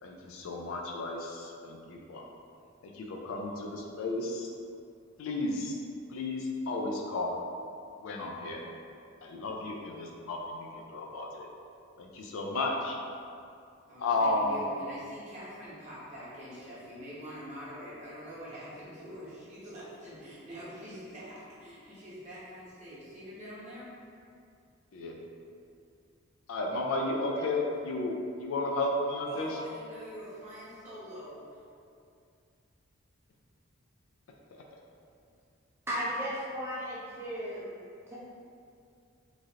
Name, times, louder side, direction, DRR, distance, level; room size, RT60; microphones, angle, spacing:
voice 1, 0.0-2.3 2.8-4.5 5.2-5.8 6.1-7.3 8.0-8.6 9.2-11.5 12.0-13.0 14.0-14.7 24.9-25.2 26.5-29.6 34.5-34.6, left 2 dB, 70° left, 0 dB, 0.4 m, -33 dB
voice 2, 13.9-23.9 29.3-31.6, equal, 35° right, -9 dB, 0.8 m, -45 dB
voice 3, 35.9-37.7 38.1-38.2, equal, 10° right, -7 dB, 0.5 m, -35 dB
3.1 x 2.4 x 2.7 m, 2.4 s
head